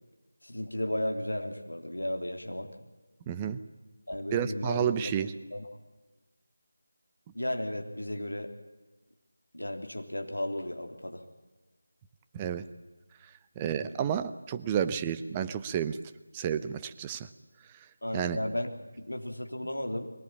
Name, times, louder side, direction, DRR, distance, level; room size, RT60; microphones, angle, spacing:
voice 1, 0.4-2.7 4.1-5.1 5.5-5.7 7.3-8.5 9.5-11.2 18.0-18.7 19.0-20.1, left 1 dB, 80° left, 5 dB, 3.4 m, -34 dB
voice 2, 3.3-3.6 4.3-5.3 12.3-12.6 13.6-16.0 16.3-17.3 18.1-18.4, right 9 dB, 15° right, 10 dB, 0.7 m, -30 dB
22.5 x 19.0 x 8.7 m, 1.2 s
figure-of-eight pair, 165°, 0 cm